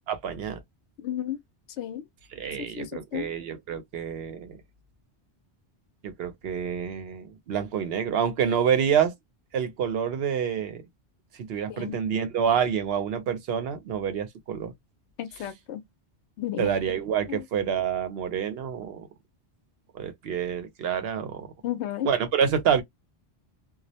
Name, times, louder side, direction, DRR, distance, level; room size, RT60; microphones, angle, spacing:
voice 1, 0.1-0.6 2.3-4.6 6.0-9.1 9.5-10.8 11.4-14.7 16.6-19.1 19.9-21.5 22.0-22.8, right 8 dB, 65° right, 0.8 m, -27 dB
voice 2, 1.0-1.4 1.8-2.0 2.6-3.3 11.7-12.0 15.2-15.8 16.4-16.7 17.3-17.4 21.6-22.1, left 11 dB, 80° left, 0.9 m, -33 dB
2.3 x 2.0 x 2.7 m
omnidirectional pair, 1.1 m